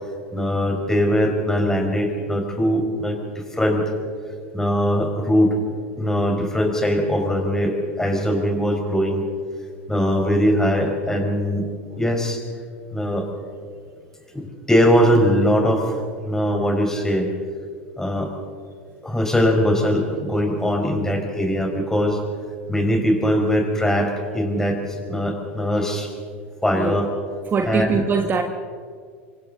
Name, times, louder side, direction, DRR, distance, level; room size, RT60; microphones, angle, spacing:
voice 1, 0.3-3.9 4.5-5.6 6.0-9.2 9.9-11.7 12.0-12.4 12.9-13.3 14.3-17.3 18.0-18.3 19.0-22.2 22.7-26.1 26.6-27.1 27.7-27.9, equal, 5° left, 2 dB, 4.9 m, -21 dB
voice 2, 27.5-28.4, right 5 dB, 30° right, 5 dB, 1.4 m, -23 dB
28.0 x 24.5 x 3.9 m, 2.1 s
hypercardioid pair, 90°, 7 cm